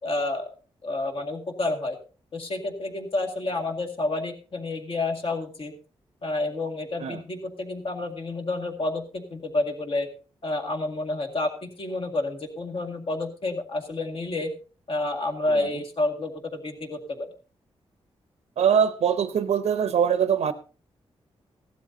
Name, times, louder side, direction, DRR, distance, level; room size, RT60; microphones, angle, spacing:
voice 1, 0.0-0.5 0.8-2.0 2.3-5.7 6.2-10.1 10.4-14.5 14.9-17.3, left 2 dB, 55° left, 3 dB, 2.0 m, -29 dB
voice 2, 18.6-20.5, right 8 dB, 90° right, 11 dB, 0.7 m, -23 dB
16.5 x 12.5 x 2.7 m, 0.35 s
cardioid pair, 85°, 11 cm